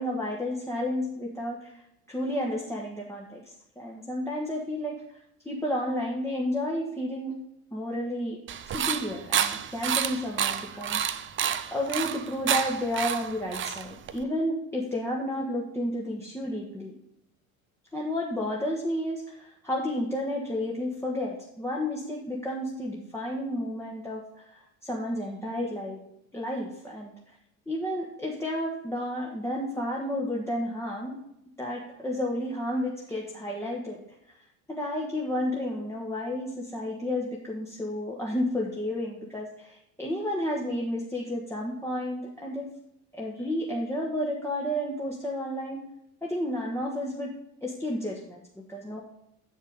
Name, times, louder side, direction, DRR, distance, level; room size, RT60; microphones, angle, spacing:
voice 1, 0.0-1.8 2.1-5.0 5.4-7.3 7.7-8.4 8.7-11.0 11.7-16.9 17.9-26.0 26.3-27.3 27.7-31.2 31.6-34.0 34.7-42.7 43.1-45.9 46.2-47.3 47.6-49.0, left 1 dB, 5° left, -3 dB, 1.5 m, -31 dB
sound 1, 8.5-14.2, right 9 dB, 30° right, 0.6 m, -29 dB
8.3 x 5.6 x 5.3 m, 0.82 s
figure-of-eight pair, 60°, 41 cm